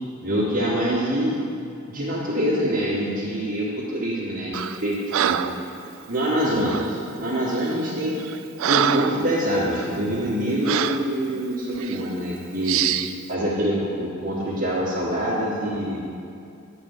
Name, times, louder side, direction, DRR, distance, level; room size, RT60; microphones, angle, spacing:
voice 1, 0.2-1.3 1.9-5.0 5.2-5.4 6.1-8.2 8.6-12.8 13.3-16.0, equal, 40° right, -8 dB, 1.4 m, -25 dB
Breathing, 4.5-4.8 5.1-5.6 6.7-6.9 7.6-7.8 8.2-9.2 9.7-9.9 10.7-11.1 11.8-12.0 12.7-13.1, right 10 dB, 65° right, 0.3 m, -25 dB
9.3 x 4.5 x 7.1 m, 2.6 s
head